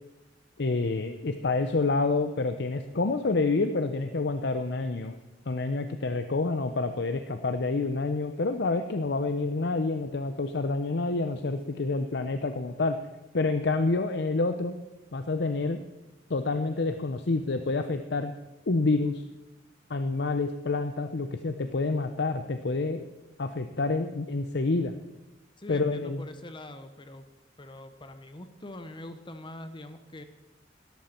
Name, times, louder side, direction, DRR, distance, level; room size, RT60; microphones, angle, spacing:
voice 1, 0.6-5.2 5.5-13.0 13.3-14.7 15.1-15.8 16.3-18.3 18.7-19.2 19.9-23.0 23.4-24.9 25.7-26.2, left 3 dB, 65° left, 8 dB, 0.7 m, -28 dB
voice 2, 25.6-27.2 27.6-30.2, left 1 dB, 30° left, 9 dB, 0.9 m, -43 dB
17.0 x 13.0 x 4.4 m, 1.0 s
head